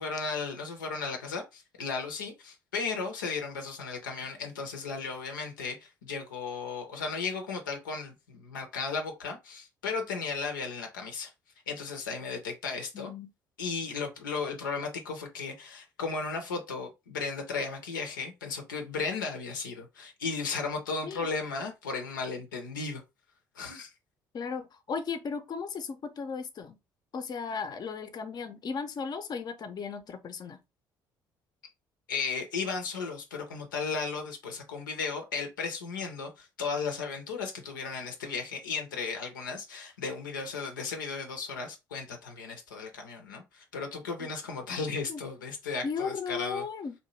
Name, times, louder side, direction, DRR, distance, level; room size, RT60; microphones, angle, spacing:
voice 1, 0.0-11.3 11.7-13.1 13.6-23.0 23.5-23.9 32.1-46.6, left 4 dB, 85° left, 0.5 m, -35 dB
voice 2, 12.9-13.3 21.0-21.3 24.3-26.8 27.1-30.6 45.1-45.2 45.8-46.9, left 5 dB, 40° left, 0.5 m, -36 dB
2.7 x 2.1 x 3.1 m
hypercardioid pair, 50°, 10 cm